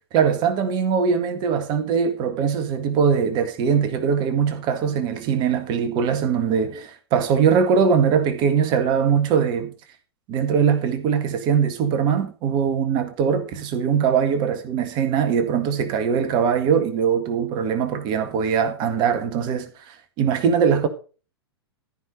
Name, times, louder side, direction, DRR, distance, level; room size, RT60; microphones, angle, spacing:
voice 1, 0.1-9.7 10.3-20.9, right 7 dB, 35° right, 1.8 m, -21 dB
14.0 x 5.8 x 5.3 m
figure-of-eight pair, 100°, 14 cm